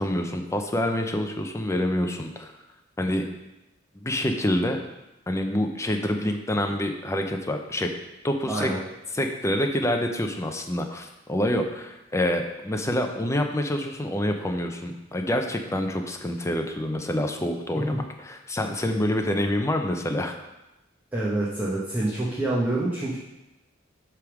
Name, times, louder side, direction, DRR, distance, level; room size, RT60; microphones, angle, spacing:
voice 1, 0.0-2.5 3.0-3.2 4.0-4.8 5.3-7.9 8.2-8.7 9.1-20.3, left 1 dB, 15° left, 4 dB, 0.6 m, -27 dB
voice 2, 8.5-8.8 21.1-23.2, right 2 dB, 10° right, -7 dB, 1.1 m, -26 dB
8.2 x 3.6 x 6.0 m, 0.96 s
head